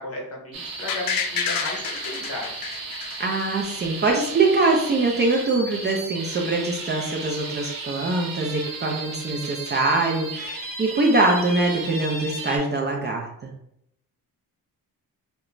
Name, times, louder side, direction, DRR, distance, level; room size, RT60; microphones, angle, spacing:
voice 1, 0.0-2.6, left 1 dB, 40° left, -2 dB, 0.9 m, -35 dB
sound 1, 0.5-12.6, right 3 dB, 65° right, 0.7 m, -35 dB
sound 2, 0.9-3.8 4.2-4.3, left 6 dB, 65° left, 0.5 m, -29 dB
voice 2, 3.2-13.3, right 2 dB, 30° right, 0 dB, 0.4 m, -23 dB
2.4 x 2.2 x 2.9 m, 0.76 s
cardioid pair, 100°, 36 cm